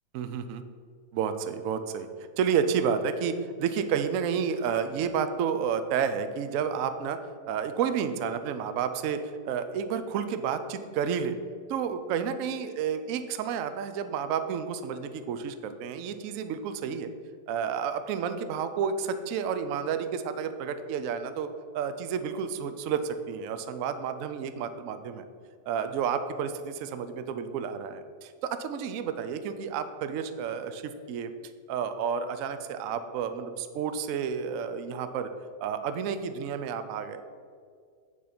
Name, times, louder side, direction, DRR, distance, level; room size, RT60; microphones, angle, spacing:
voice 1, 0.1-0.6 1.1-2.1 2.4-7.2 7.5-11.3 11.7-17.1 17.5-21.5 21.7-25.2 25.7-31.3 31.7-35.3 35.6-37.2, right 7 dB, 65° right, 9 dB, 0.8 m, -30 dB
9.3 x 4.0 x 5.9 m, 2.1 s
omnidirectional pair, 1.8 m